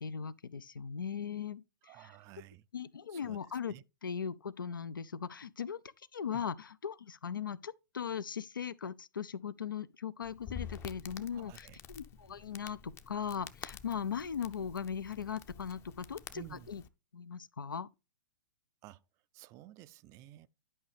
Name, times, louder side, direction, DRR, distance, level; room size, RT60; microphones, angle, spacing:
voice 1, 0.0-1.6 2.0-2.1 2.7-3.8 4.0-5.8 6.1-16.8 17.1-17.9, left 7 dB, 85° left, 0.5 m, -39 dB
voice 2, 1.8-2.6 3.1-3.4 3.7-3.8 6.3-6.4 11.3-11.8 16.3-16.7 18.8-19.0 19.3-20.5, right 15 dB, 30° right, 0.4 m, -52 dB
Crackle, 10.2-16.9, left 8 dB, 25° left, 0.6 m, -49 dB
11.0 x 5.2 x 3.3 m
hypercardioid pair, 115°, 11 cm